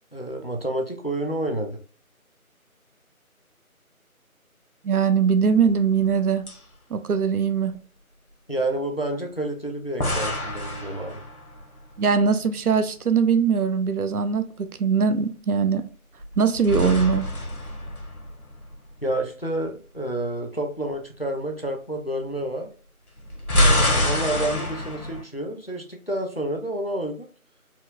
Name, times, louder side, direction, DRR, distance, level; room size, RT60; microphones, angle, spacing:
voice 1, 0.1-1.8 8.5-11.2 19.0-22.7 23.5-27.3, right 1 dB, 45° left, 0.4 m, -29 dB
voice 2, 4.8-6.5 6.9-7.8 12.0-15.9 16.4-17.3, right 6 dB, 90° right, 0.6 m, -21 dB
sound 1, 5.6-6.2 6.5-6.6 10.0-11.7 16.2-18.8 23.2-25.2, left 1 dB, 90° left, 1.1 m, -26 dB
4.3 x 2.2 x 2.4 m
figure-of-eight pair, 170°, 43 cm